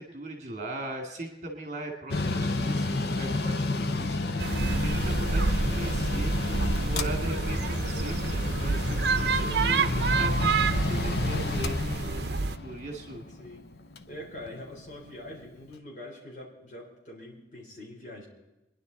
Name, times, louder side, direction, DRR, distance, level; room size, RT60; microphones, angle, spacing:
voice 1, 0.0-6.3 6.8-13.3, right 1 dB, 40° right, 1 dB, 2.5 m, -39 dB
Mechanical fan, 2.1-15.5, left 2 dB, 65° left, 0.8 m, -31 dB
sound 1, 4.4-12.6, right 4 dB, 65° right, 0.7 m, -28 dB
voice 2, 14.1-18.3, left 1 dB, 45° left, -3 dB, 4.0 m, -44 dB
23.5 x 11.0 x 4.1 m, 1.0 s
head